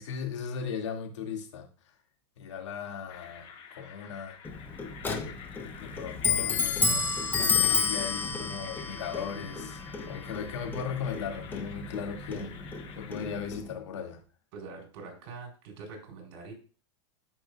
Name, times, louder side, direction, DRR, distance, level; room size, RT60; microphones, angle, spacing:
voice 1, 0.0-1.7 2.4-4.4 5.8-12.5 13.0-14.2, left 6 dB, 85° left, 2.3 m, -37 dB
sound 1, 3.1-13.5, left 7 dB, 40° left, 1.9 m, -49 dB
Clock, 4.4-13.7, left 5 dB, 15° left, 1.0 m, -31 dB
voice 2, 14.5-16.5, right 4 dB, 55° right, 4.1 m, -44 dB
13.5 x 5.4 x 2.4 m
supercardioid pair, 135°, 15 cm